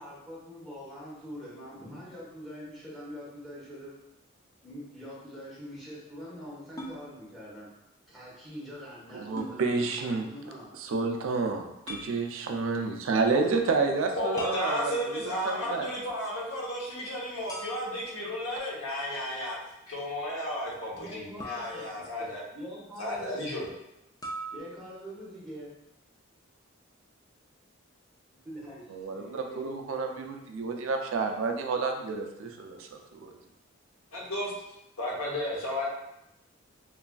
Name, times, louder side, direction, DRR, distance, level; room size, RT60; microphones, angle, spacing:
voice 1, 0.0-3.9 4.6-7.7 8.1-10.7 20.7-23.7 24.5-25.7 28.3-29.7, equal, ahead, -8 dB, 0.8 m, -44 dB
sound 1, 6.8-7.0 9.4-9.6 11.9-12.1 14.4-15.3 17.5-18.1 21.4-22.3 24.2-24.6, equal, 15° left, 0.3 m, -40 dB
voice 2, 9.1-10.2 10.8-14.9 15.2-15.9 28.9-33.3, right 4 dB, 70° right, 4 dB, 0.3 m, -30 dB
voice 3, 14.2-19.6 19.9-22.4 23.0-23.7 34.1-34.5 35.0-35.9, left 1 dB, 90° left, -4 dB, 0.8 m, -33 dB
3.2 x 2.4 x 2.2 m, 0.87 s
head